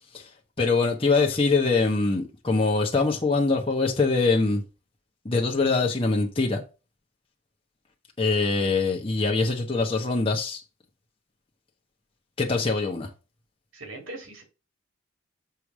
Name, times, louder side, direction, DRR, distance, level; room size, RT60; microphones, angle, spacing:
voice 1, 0.6-4.6 5.2-6.6 8.2-10.6 12.4-13.1, left 3 dB, 25° left, 1.1 m, -23 dB
voice 2, 13.7-14.4, right 2 dB, 85° right, 2.4 m, -40 dB
6.9 x 3.3 x 6.1 m
head